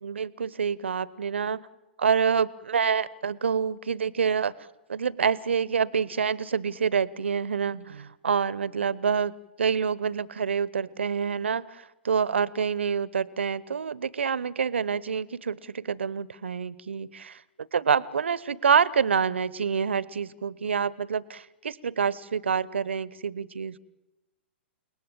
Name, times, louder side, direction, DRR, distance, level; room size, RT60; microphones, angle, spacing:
voice 1, 0.0-1.7 2.0-4.5 4.9-9.3 9.6-17.4 17.7-23.8, right 6 dB, 75° right, 21 dB, 0.9 m, -27 dB
29.5 x 19.0 x 9.0 m, 1.1 s
figure-of-eight pair, 110°, 6 cm